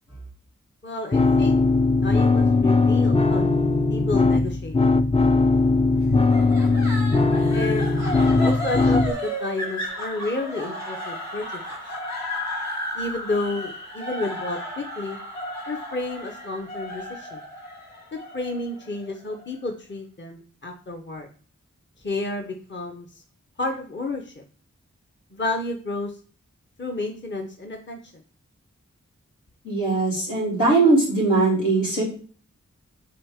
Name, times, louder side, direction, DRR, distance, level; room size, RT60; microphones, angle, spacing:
voice 1, 0.8-1.6 2.0-3.5 3.9-4.8 7.5-8.0 8.4-11.6 12.9-15.2 15.7-17.4 18.1-21.3 22.0-23.2 23.6-24.3 25.3-26.1 26.8-28.0, left 2 dB, 40° left, 2 dB, 0.9 m, -31 dB
sound 1, 1.1-9.1, left 3 dB, 20° left, 0.4 m, -19 dB
sound 2, 6.3-19.5, equal, 65° left, 2.0 m, -34 dB
voice 2, 29.6-32.0, right 3 dB, 90° left, -7 dB, 3.7 m, -20 dB
7.8 x 4.0 x 3.6 m, 0.41 s
wide cardioid pair, 55°, 30 cm